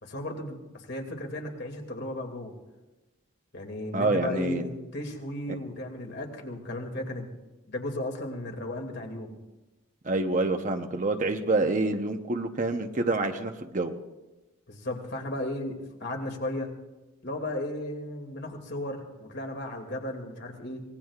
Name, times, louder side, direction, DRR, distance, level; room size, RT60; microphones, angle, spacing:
voice 1, 0.0-2.5 3.5-7.3 7.7-9.3 14.7-16.7 17.2-20.8, left 1 dB, 55° left, 3 dB, 2.4 m, -35 dB
voice 2, 3.9-4.6 10.0-13.9, right 2 dB, 40° right, 5 dB, 0.8 m, -27 dB
24.5 x 19.5 x 2.4 m, 1.1 s
head